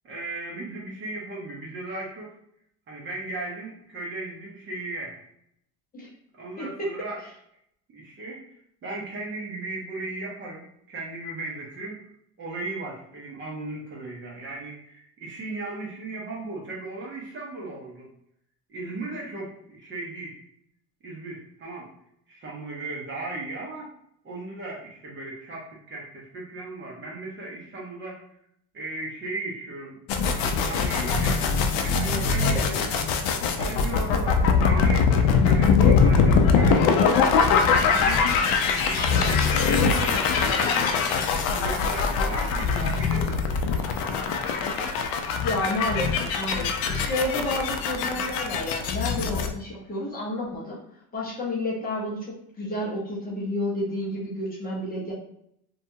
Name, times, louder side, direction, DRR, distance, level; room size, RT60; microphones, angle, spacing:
voice 1, 0.0-2.3 2.9-5.2 6.4-7.2 7.9-8.4 8.8-12.0 12.4-18.1 18.7-20.4 21.0-21.9 22.3-23.9 24.2-28.2 28.7-30.0 30.3-31.5 31.8-32.9 33.6-36.9 37.4-38.3 38.7-44.2, right 2 dB, 30° right, -3 dB, 0.7 m, -36 dB
voice 2, 6.6-6.9 32.4-32.7 45.4-50.8 51.1-55.1, left 1 dB, 25° left, -5 dB, 0.7 m, -30 dB
sound 1, 30.1-49.5, left 5 dB, 70° left, 0.5 m, -22 dB
2.7 x 2.3 x 2.7 m, 0.72 s
cardioid pair, 145°, 37 cm